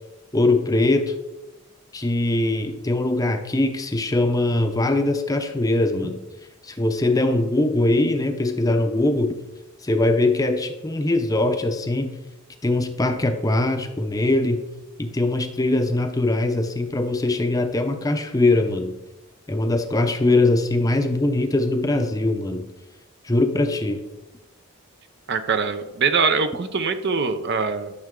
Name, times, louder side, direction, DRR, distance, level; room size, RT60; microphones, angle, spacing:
voice 1, 0.3-1.1 1.9-6.2 6.6-9.4 9.8-12.2 12.6-14.7 15.0-19.0 19.5-22.7 23.2-24.0, left 2 dB, 15° left, 6 dB, 0.6 m, -21 dB
voice 2, 25.3-27.9, right 5 dB, 50° right, 9 dB, 0.7 m, -23 dB
12.0 x 6.7 x 3.7 m, 1.0 s
head